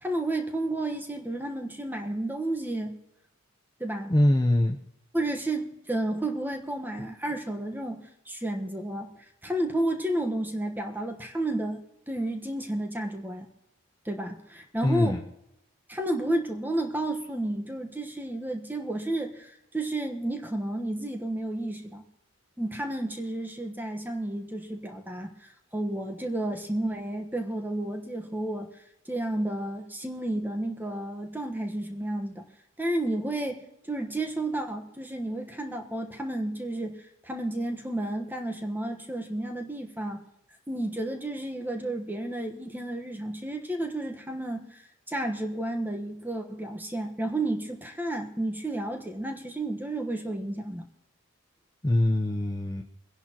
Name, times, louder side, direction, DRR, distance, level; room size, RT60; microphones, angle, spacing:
voice 1, 0.0-3.0 3.8-4.1 5.1-9.1 9.4-13.5 14.0-15.2 15.9-22.0 22.6-28.7 29.0-32.5 32.8-40.2 40.7-44.8 45.1-50.9, right 1 dB, 10° right, 3 dB, 1.2 m, -31 dB
voice 2, 4.1-4.8 14.8-15.2 51.8-52.8, left 1 dB, 20° left, 2 dB, 0.7 m, -23 dB
24.0 x 10.5 x 3.0 m, 0.88 s
head